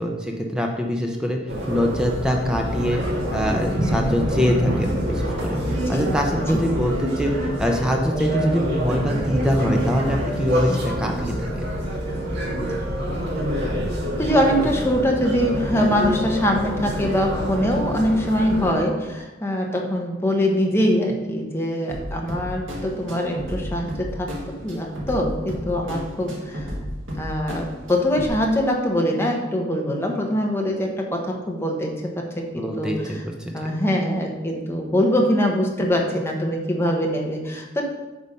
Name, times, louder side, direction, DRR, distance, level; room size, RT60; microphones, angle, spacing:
voice 1, 0.0-1.4 1.7-3.0 3.3-11.3 32.6-33.5, equal, 5° right, 1 dB, 0.6 m, -24 dB
sound 1, 1.5-18.7, equal, 60° right, 1.7 m, -26 dB
voice 2, 6.4-6.8 8.4-8.5 10.7-10.8 14.2-26.7 27.2-33.2 33.5-37.8, equal, 15° left, 0 dB, 1.0 m, -23 dB
sound 2, 21.9-28.3, equal, 90° right, 1.8 m, -33 dB
8.4 x 3.4 x 5.3 m, 1.1 s
head